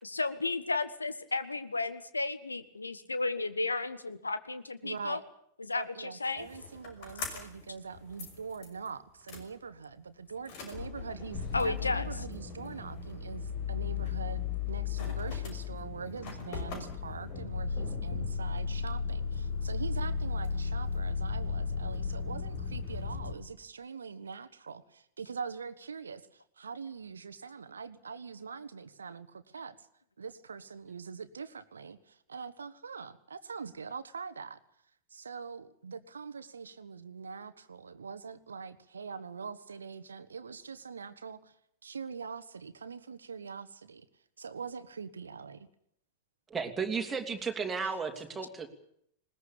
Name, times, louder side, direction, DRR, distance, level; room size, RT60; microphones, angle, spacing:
voice 1, 0.0-5.2 5.6-6.5 11.5-12.1 47.8-47.9, left 3 dB, 80° left, 12 dB, 1.5 m, -33 dB
voice 2, 4.8-5.2 5.7-29.9 30.2-34.6 35.1-41.6 41.8-44.1 44.4-45.7, right 5 dB, 70° right, 13 dB, 1.4 m, -43 dB
sound 1, 6.4-7.7 7.9-8.9 9.3-9.4 10.4-23.3, left 6 dB, 45° left, 5.8 m, -35 dB
voice 3, 46.5-48.7, right 5 dB, 15° right, 4 dB, 3.1 m, -34 dB
20.5 x 20.0 x 8.8 m, 0.69 s
figure-of-eight pair, 90°, 0 cm